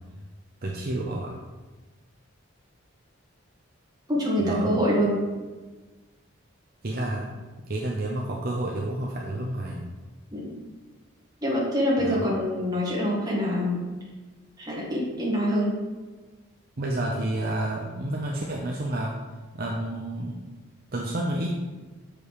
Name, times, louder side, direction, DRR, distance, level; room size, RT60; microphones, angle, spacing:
voice 1, 0.6-1.3 4.4-4.7 6.8-7.3 7.7-9.8 12.0-12.2 16.8-19.1 19.5-20.4 20.9-21.5, right 1 dB, 45° right, -2 dB, 0.7 m, -30 dB
voice 2, 4.1-5.2 10.3-10.6 11.4-13.9 14.6-15.7, equal, 20° right, -5 dB, 1.9 m, -25 dB
7.0 x 5.1 x 4.8 m, 1.3 s
head